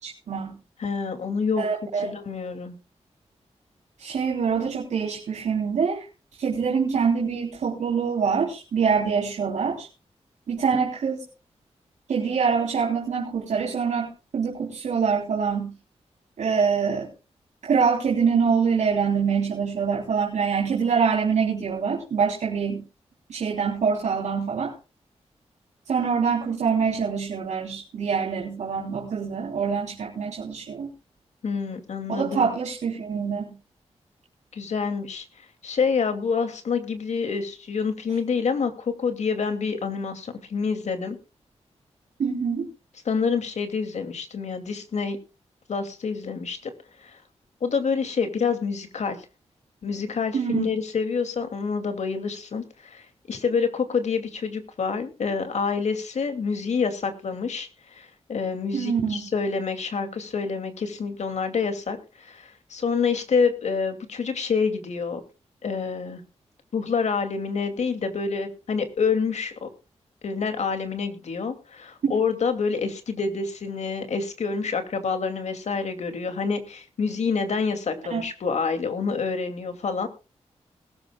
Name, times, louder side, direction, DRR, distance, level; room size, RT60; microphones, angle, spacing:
voice 1, 0.0-0.6 1.6-2.1 4.0-6.1 6.4-9.9 10.5-11.2 12.1-15.8 16.4-17.1 17.7-22.8 23.3-24.7 25.9-30.9 32.1-33.6 42.2-42.7 50.3-50.7 58.7-59.2 78.1-78.2, right 6 dB, 90° right, -3 dB, 3.4 m, -25 dB
voice 2, 0.8-1.7 2.0-2.8 31.4-32.5 34.5-35.2 35.6-41.2 43.0-45.2 45.7-46.7 47.0-47.2 47.6-49.2 49.8-65.2 65.6-66.2 66.7-69.7 70.2-80.1, left 5 dB, 75° left, 7 dB, 2.6 m, -27 dB
21.0 x 13.5 x 2.3 m, 0.31 s
cardioid pair, 75°, 12 cm